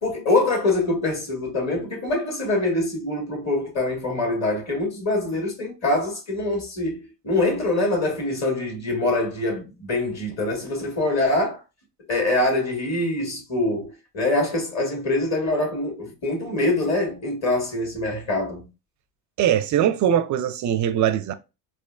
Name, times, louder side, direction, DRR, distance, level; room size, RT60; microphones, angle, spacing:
voice 1, 0.0-11.6 12.1-18.6, left 2 dB, 35° left, 1.9 m, -24 dB
voice 2, 19.4-21.3, right 10 dB, 40° right, 0.4 m, -21 dB
4.2 x 2.5 x 2.3 m
hypercardioid pair, 75°, 48 cm